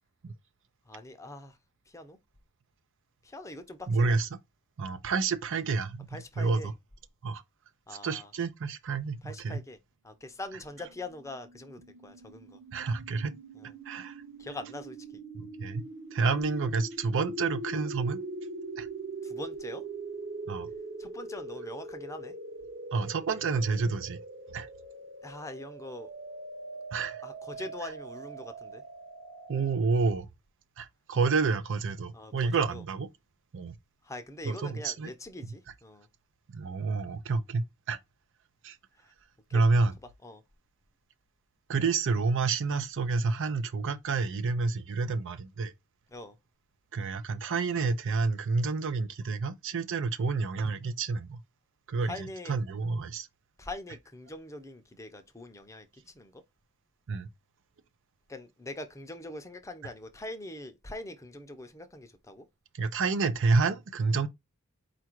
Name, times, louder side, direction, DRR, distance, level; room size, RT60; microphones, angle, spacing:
voice 1, 0.9-1.6 1.9-2.2 3.2-4.2 6.1-6.7 7.9-8.3 9.2-9.8 10.0-12.6 13.6-13.7 14.4-15.0 19.2-19.8 21.0-22.3 25.2-26.1 27.2-28.8 32.1-32.8 34.0-36.1 39.5-39.6 40.2-40.4 46.1-46.4 52.1-52.6 53.6-55.9 56.1-56.4 58.3-62.4, left 1 dB, 15° left, 0.6 m, -43 dB
voice 2, 3.9-4.3 4.8-6.7 7.2-7.4 8.0-9.6 12.7-13.3 13.9-14.2 15.3-15.8 16.1-18.2 18.8-18.9 20.5-20.7 22.9-24.2 24.5-24.7 26.9-27.2 29.5-30.3 30.8-33.1 33.5-33.8 34.4-35.1 36.5-38.0 38.6-38.8 39.5-39.9 41.7-45.7 46.9-51.4 51.9-53.3 57.1-57.3 62.7-64.3, right 4 dB, 60° right, 0.5 m, -29 dB
sound 1, 10.9-29.8, right 2 dB, 45° right, 1.0 m, -42 dB
4.5 x 2.5 x 4.4 m
head